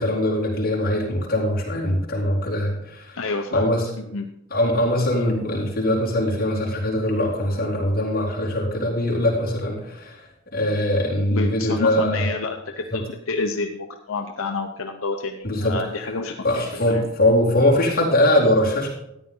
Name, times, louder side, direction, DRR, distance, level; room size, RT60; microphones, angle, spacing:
voice 1, 0.0-3.2 3.5-3.8 4.5-10.2 10.5-12.3 15.4-15.8 16.4-18.9, left 1 dB, 45° left, -4 dB, 3.8 m, -22 dB
voice 2, 3.1-3.7 4.0-4.3 11.3-16.4 16.7-17.0, left 3 dB, 80° left, 3 dB, 0.8 m, -29 dB
13.5 x 9.9 x 3.8 m, 0.82 s
head